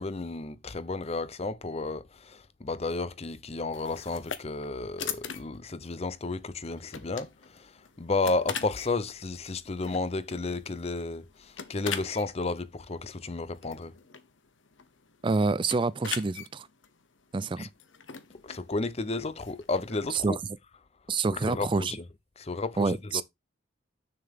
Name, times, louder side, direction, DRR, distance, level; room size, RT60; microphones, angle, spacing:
voice 1, 0.0-13.9 17.6-17.7 18.4-20.4 21.3-22.0 22.4-23.2, left 3 dB, 35° left, 0.6 m, -32 dB
sound 1, 3.7-20.2, left 8 dB, 90° left, 1.0 m, -42 dB
voice 2, 15.2-16.7 17.3-17.7 20.1-20.4 21.1-21.9 22.8-23.2, right 3 dB, 25° right, 0.4 m, -27 dB
6.8 x 6.7 x 3.5 m
head